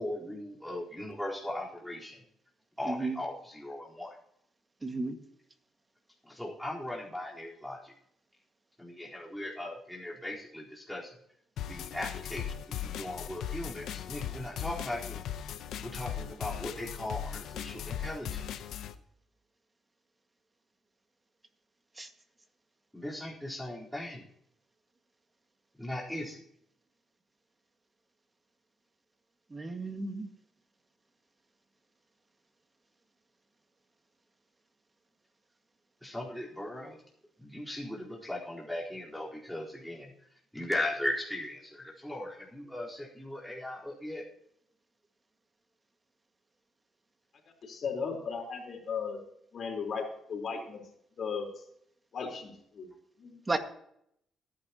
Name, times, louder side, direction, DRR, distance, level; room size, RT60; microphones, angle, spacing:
voice 1, 0.0-2.2 2.8-4.2 6.2-7.9 8.8-11.2 11.6-15.3 15.8-18.4 22.9-24.2 25.8-26.4 36.0-37.0 37.4-40.1 40.5-44.2, left 1 dB, ahead, -5 dB, 4.1 m, -38 dB
voice 2, 2.9-3.2 4.8-5.2 22.0-22.1 29.5-30.3 53.5-53.6, right 3 dB, 25° right, 6 dB, 1.9 m, -33 dB
sound 1, 11.6-18.9, left 9 dB, 80° left, 0.8 m, -38 dB
voice 3, 47.6-49.2 49.5-50.8 51.2-51.6 52.1-52.9 53.2-53.4, left 5 dB, 55° left, 2 dB, 4.1 m, -36 dB
23.5 x 10.5 x 3.0 m, 0.73 s
cardioid pair, 90°, 0 cm